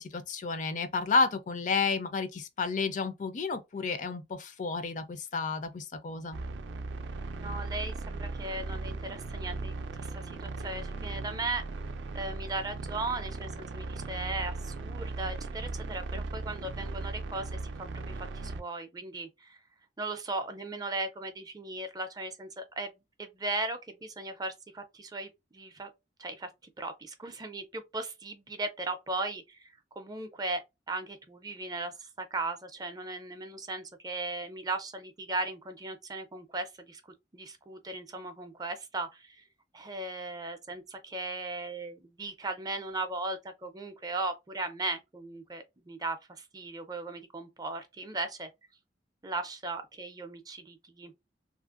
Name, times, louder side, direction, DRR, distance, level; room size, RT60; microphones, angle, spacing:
voice 1, 0.0-6.4, left 4 dB, 45° left, 0.4 m, -31 dB
sound 1, 6.3-18.6, right 3 dB, 80° right, 0.4 m, -38 dB
voice 2, 7.3-11.6 12.1-19.6 20.0-22.9 23.2-25.9 26.2-26.5 26.8-30.6 30.9-37.0 37.3-39.4 39.7-48.5 49.2-51.1, right 2 dB, 20° right, 0.4 m, -37 dB
3.1 x 2.5 x 2.4 m
head